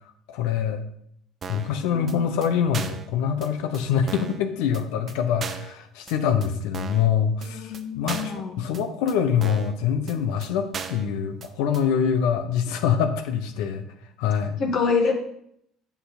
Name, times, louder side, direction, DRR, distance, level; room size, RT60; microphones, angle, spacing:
voice 1, 0.3-0.8 1.5-13.9 14.2-14.6, left 8 dB, 70° left, 8 dB, 0.9 m, -25 dB
sound 1, 1.4-1.7 2.1-2.2 2.4-2.5 2.7-3.1 3.4-3.5 3.7-3.8 4.1-4.4 4.7-4.8 5.1-5.2 5.4-5.7 6.1-6.2 6.4-6.5 6.7-7.1 7.4-7.5 7.7-7.8 8.1-8.4 8.7-8.8 9.1-9.2 9.4-9.7 10.1-10.2 10.4-10.5 10.7-11.1 11.4-11.5 11.7-11.8, right 6 dB, 40° right, 0.9 m, -36 dB
voice 2, 1.8-2.3 7.4-8.6 14.6-15.1, left 5 dB, 55° left, 2 dB, 1.9 m, -27 dB
9.2 x 5.8 x 4.3 m, 0.72 s
hypercardioid pair, 70°, 0 cm